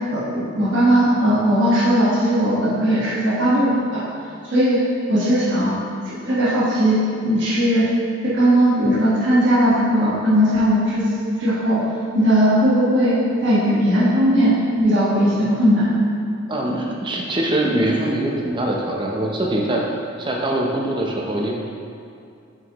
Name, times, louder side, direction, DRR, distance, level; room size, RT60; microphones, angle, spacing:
voice 1, 0.1-4.0 4.4-4.8 5.1-5.7 6.2-7.9 8.2-11.1 11.4-11.8 12.1-13.2 13.4-15.9, equal, 55° right, -10 dB, 1.5 m, -18 dB
voice 2, 16.5-19.8 20.2-21.6, right 1 dB, 20° right, -1 dB, 0.6 m, -23 dB
7.4 x 5.0 x 3.0 m, 2.4 s
head